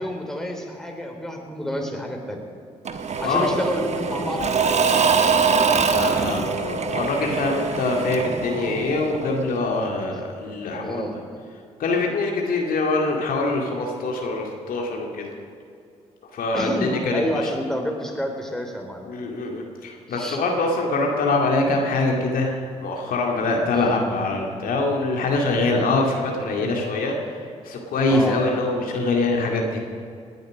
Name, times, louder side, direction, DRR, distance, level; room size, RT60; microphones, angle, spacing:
voice 1, 0.0-2.4 3.2-5.0 10.8-11.2 16.5-19.1 20.1-20.4 23.7-24.0 28.1-28.4, equal, 5° left, 2 dB, 3.5 m, -29 dB
Engine / Mechanisms / Drill, 2.8-9.5, right 5 dB, 45° right, 1.3 m, -23 dB
voice 2, 5.8-11.0 11.8-15.3 16.3-17.5 19.1-29.8, left 2 dB, 65° left, 1 dB, 2.2 m, -24 dB
18.5 x 9.4 x 6.4 m, 2.4 s
hypercardioid pair, 45°, 16 cm